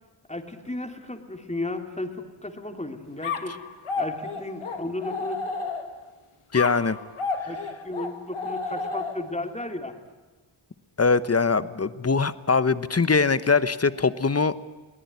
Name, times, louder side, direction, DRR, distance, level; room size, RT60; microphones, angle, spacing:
voice 1, 0.3-3.5 4.0-5.4 7.4-10.0, left 2 dB, 15° left, 5 dB, 3.0 m, -34 dB
sound 1, 3.2-6.1 6.5-9.4, left 4 dB, 85° left, 2.3 m, -32 dB
voice 2, 6.5-7.0 11.0-14.6, left 4 dB, 30° left, 14 dB, 1.0 m, -22 dB
22.0 x 18.5 x 9.6 m, 1.2 s
wide cardioid pair, 70°, 50 cm